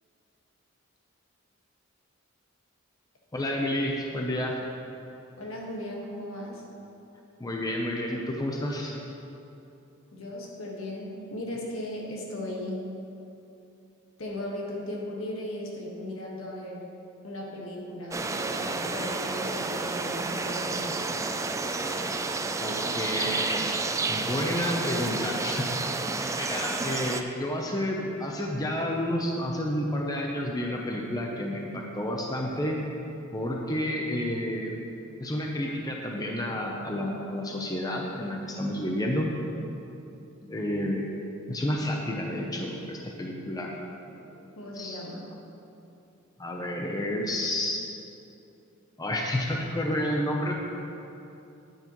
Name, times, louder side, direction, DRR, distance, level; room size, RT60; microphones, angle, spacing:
voice 1, 3.3-4.6 7.4-8.9 22.6-23.8 24.1-25.8 26.3-32.8 33.3-34.7 35.2-39.3 40.5-41.0 41.5-43.7 44.1-44.4 44.8-45.0 46.4-47.8 49.0-50.6, left 1 dB, 20° left, 0 dB, 0.6 m, -30 dB
voice 2, 5.4-6.6 10.1-12.9 14.2-16.9 17.2-21.2 44.5-45.3, left 1 dB, 75° left, -2 dB, 1.6 m, -37 dB
sound 1, 18.1-27.2, right 3 dB, 15° right, 0.3 m, -30 dB
9.5 x 9.3 x 3.0 m, 2.8 s
head